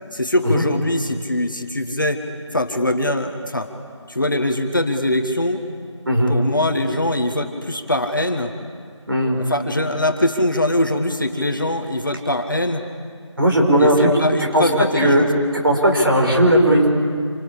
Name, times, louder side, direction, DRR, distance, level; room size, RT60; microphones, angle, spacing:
voice 1, 0.1-2.2 2.5-3.7 4.1-5.7 6.3-8.5 9.4-12.8 13.8-15.3, left 1 dB, 40° left, 5 dB, 1.6 m, -22 dB
voice 2, 9.1-9.4 13.4-14.1 14.5-14.6 15.0-15.2 15.5-16.9, right 1 dB, 45° right, 0 dB, 5.3 m, -16 dB
27.0 x 25.5 x 8.6 m, 2.1 s
figure-of-eight pair, 180°, 16 cm